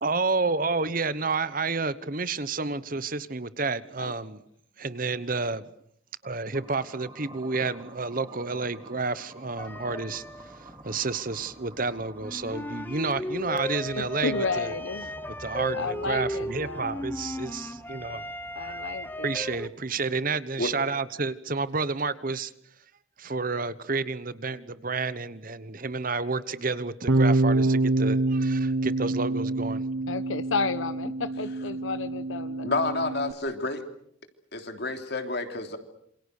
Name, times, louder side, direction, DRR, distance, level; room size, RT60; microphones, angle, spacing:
voice 1, 0.0-4.4 4.8-5.7 6.2-14.7 15.4-18.2 18.6-18.8 19.2-22.5 23.2-29.8, right 4 dB, 45° right, 15 dB, 1.1 m, -30 dB
sound 1, 6.5-20.5, right 2 dB, 20° right, 2.8 m, -50 dB
sound 2, 9.6-19.7, left 1 dB, 10° left, 1.0 m, -36 dB
voice 2, 14.0-15.1 15.7-17.0 18.5-19.3 30.1-32.7, left 4 dB, 80° left, 13 dB, 1.2 m, -32 dB
Bass guitar, 27.1-33.3, right 2 dB, 75° right, 1.3 m, -26 dB
voice 3, 32.6-33.8 34.5-35.8, left 2 dB, 55° left, 6 dB, 3.2 m, -29 dB
27.5 x 27.0 x 6.6 m, 0.70 s
head